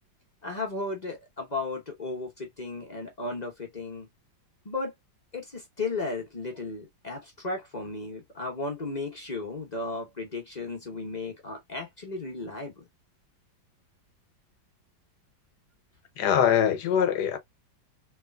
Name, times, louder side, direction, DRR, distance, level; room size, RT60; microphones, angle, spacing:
voice 1, 0.4-4.1 4.6-4.9 5.3-12.8, left 3 dB, 35° left, 0.7 m, -35 dB
voice 2, 16.2-17.4, left 9 dB, 70° left, 1.3 m, -23 dB
3.3 x 3.3 x 2.2 m
omnidirectional pair, 2.0 m